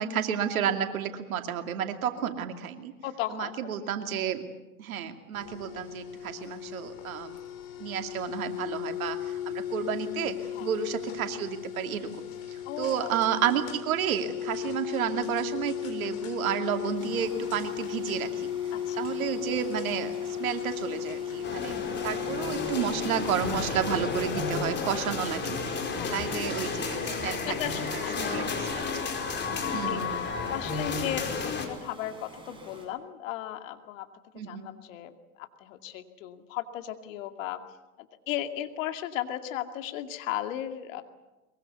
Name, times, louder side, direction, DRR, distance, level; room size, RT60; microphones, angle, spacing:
voice 1, 0.0-2.9 3.3-4.4 4.8-7.3 7.8-12.2 12.8-18.5 19.0-20.1 20.4-21.8 22.0-25.8 26.1-29.2 29.7-30.2 34.3-34.7, right 9 dB, 70° right, 6 dB, 2.7 m, -31 dB
voice 2, 3.0-3.5 10.5-10.7 12.6-13.1 18.7-19.1 21.5-22.1 23.5-23.7 25.9-26.2 27.4-29.3 29.6-34.1 34.4-35.1 35.4-37.6 38.0-41.0, left 12 dB, 60° left, 7 dB, 2.5 m, -36 dB
sound 1, 5.3-24.5, left 10 dB, 45° left, 6.8 m, -36 dB
sound 2, 16.9-32.9, right 2 dB, 10° right, 8.0 m, -49 dB
sound 3, 21.4-31.7, left 4 dB, 25° left, 4.8 m, -32 dB
23.0 x 23.0 x 8.2 m, 1.1 s
hypercardioid pair, 95°, 43 cm